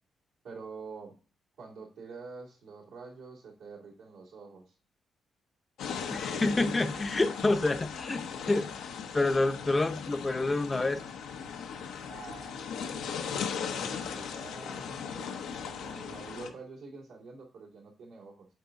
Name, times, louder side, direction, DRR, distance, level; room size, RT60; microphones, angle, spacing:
voice 1, 0.4-1.2 1.6-4.7 12.1-12.6 12.9-13.5 14.1-18.5, right 4 dB, 90° right, -4 dB, 2.4 m, -47 dB
sound 1, 5.8-16.5, left 7 dB, 85° left, 0.7 m, -38 dB
voice 2, 6.1-8.7 9.1-11.0 13.8-14.0, left 2 dB, 25° left, 9 dB, 0.6 m, -28 dB
8.0 x 4.0 x 3.6 m, 0.38 s
cardioid pair, 70°, 0 cm